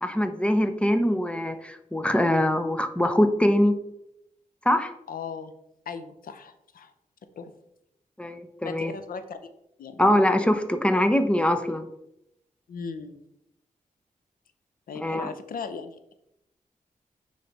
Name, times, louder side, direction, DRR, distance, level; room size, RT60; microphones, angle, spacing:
voice 1, 0.0-3.7 4.6-4.9 8.2-8.9 10.0-11.9 15.0-15.3, left 1 dB, 10° left, 8 dB, 0.8 m, -23 dB
voice 2, 5.1-5.5 5.9-6.9 7.4-7.5 8.6-9.4 9.8-10.0 12.7-13.2 14.9-16.0, left 5 dB, 90° left, 10 dB, 0.7 m, -37 dB
9.2 x 3.3 x 4.1 m, 0.81 s
cardioid pair, 65°, 14 cm